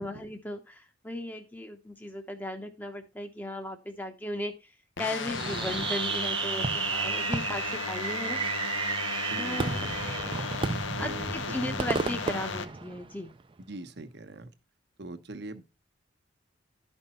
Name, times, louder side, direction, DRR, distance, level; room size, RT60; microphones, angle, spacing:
voice 1, 0.0-4.7 5.0-8.4 9.4-10.3 11.0-13.3, left 1 dB, 10° left, 0.8 m, -36 dB
sound 1, 5.0-12.6, left 5 dB, 85° left, 0.9 m, -35 dB
Fireworks, 5.3-13.4, right 5 dB, 25° right, 0.5 m, -32 dB
voice 2, 9.3-10.0 11.0-11.9 13.6-14.5 15.0-15.6, right 2 dB, 60° right, 1.1 m, -41 dB
12.0 x 5.4 x 4.2 m
head